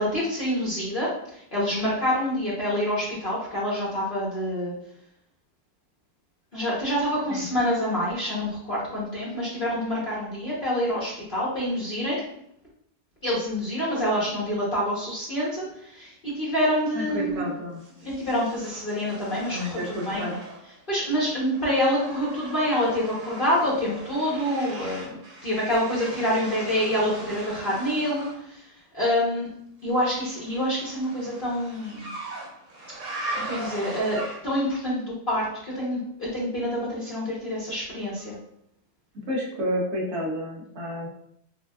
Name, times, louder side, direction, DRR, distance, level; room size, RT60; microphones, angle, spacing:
voice 1, 0.0-4.7 6.5-12.2 13.2-17.5 18.0-20.2 20.9-28.6 28.9-29.5 29.8-32.1 33.4-38.3, equal, 40° left, -7 dB, 0.8 m, -27 dB
voice 2, 16.9-17.8 19.5-20.3 39.3-41.1, equal, 65° right, -3 dB, 1.3 m, -30 dB
sound 1, 17.8-20.8 21.1-28.4 30.0-34.7, right 2 dB, 85° right, 1.6 m, -39 dB
5.9 x 2.2 x 2.3 m, 0.73 s
omnidirectional pair, 1.8 m